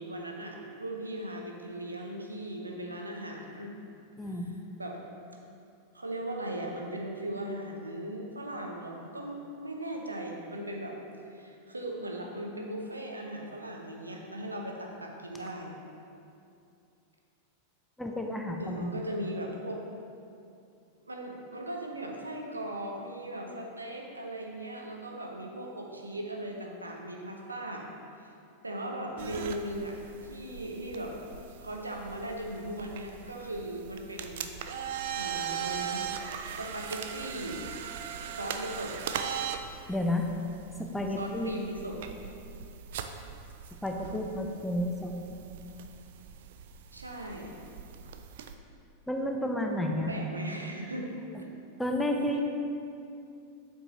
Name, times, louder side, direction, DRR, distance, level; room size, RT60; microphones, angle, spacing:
voice 1, 0.0-3.8 4.3-4.4 4.8-5.0 5.9-11.0 11.3-15.7 18.6-19.8 21.1-27.9 28.6-31.2 31.6-34.5 35.1-36.1 36.6-37.6 38.3-39.0 41.2-42.0 46.9-47.5 50.1-51.1 51.4-51.5, right 1 dB, 80° right, 0 dB, 0.7 m, -38 dB
voice 2, 4.2-4.5 18.0-19.0 39.9-40.3 40.8-41.5 43.8-45.1 49.1-50.1 51.8-52.4, left 1 dB, 5° left, 2 dB, 0.5 m, -31 dB
sound 1, 29.2-48.6, right 8 dB, 55° right, 0.3 m, -40 dB
7.7 x 4.5 x 3.1 m, 2.5 s
figure-of-eight pair, 90°, 0 cm